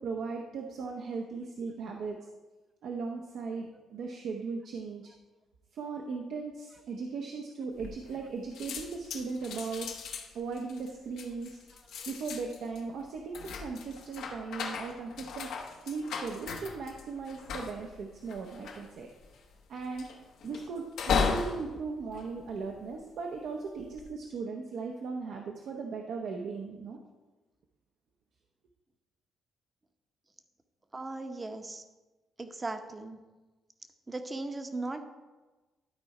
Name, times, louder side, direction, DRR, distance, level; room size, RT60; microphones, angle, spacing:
voice 1, 0.0-2.2 2.8-5.1 5.7-9.9 10.3-11.6 12.1-15.5 15.8-19.1 19.7-20.1 20.4-27.0, right 4 dB, 70° right, 1 dB, 0.8 m, -38 dB
sound 1, 7.8-8.3 8.5-23.1 23.7-24.1, left 5 dB, 80° left, 1.0 m, -37 dB
voice 2, 30.9-31.8 32.4-33.2 34.1-35.0, right 2 dB, 25° right, 7 dB, 0.8 m, -38 dB
12.0 x 4.2 x 4.9 m, 1.2 s
cardioid pair, 90°, 0 cm